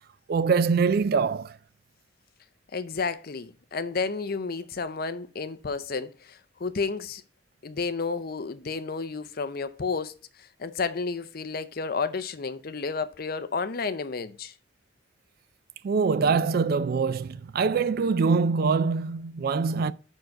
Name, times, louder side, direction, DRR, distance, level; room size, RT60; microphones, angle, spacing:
voice 1, 0.3-1.6 15.8-19.9, right 5 dB, 50° right, 0.3 m, -24 dB
voice 2, 2.7-7.2 7.6-14.5, left 4 dB, 50° left, 0.6 m, -31 dB
5.8 x 4.5 x 6.3 m
head